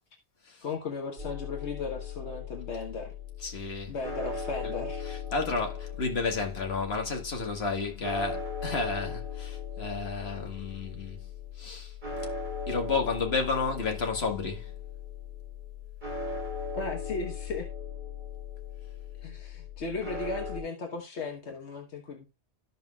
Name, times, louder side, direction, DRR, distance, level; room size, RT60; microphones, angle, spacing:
voice 1, 0.6-3.1 3.9-5.0 5.4-5.6 16.7-17.7 19.2-22.3, left 4 dB, 85° left, 1.4 m, -36 dB
sound 1, 1.2-20.6, left 5 dB, 45° right, 2.5 m, -38 dB
voice 2, 3.4-3.9 4.6-11.3 11.6-11.9 12.7-14.7, left 4 dB, 70° left, 1.8 m, -32 dB
13.5 x 5.7 x 2.3 m
omnidirectional pair, 1.1 m